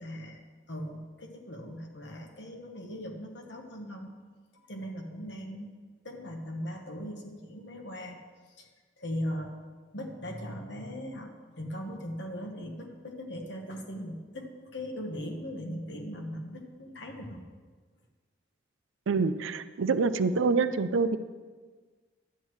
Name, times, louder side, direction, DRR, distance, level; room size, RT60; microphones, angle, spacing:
voice 1, 0.0-4.2 4.5-5.8 6.0-8.2 8.6-8.7 9.0-9.6 9.9-17.4, equal, 65° left, 2 dB, 1.2 m, -39 dB
voice 2, 19.1-21.2, right 4 dB, 85° right, 12 dB, 0.4 m, -26 dB
11.0 x 9.0 x 3.2 m, 1.4 s
head